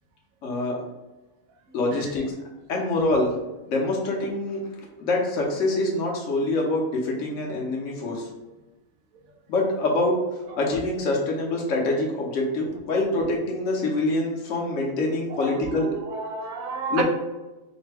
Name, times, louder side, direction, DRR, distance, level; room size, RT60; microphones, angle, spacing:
voice 1, 0.4-0.8 1.7-2.2 2.7-3.3 3.7-4.6 5.0-8.3 9.5-10.2 10.6-15.9 16.9-17.0, left 2 dB, 65° left, -1 dB, 1.1 m, -25 dB
voice 2, 15.3-17.0, right 5 dB, 85° right, 2 dB, 1.1 m, -32 dB
4.9 x 2.1 x 3.3 m, 1.1 s
omnidirectional pair, 1.4 m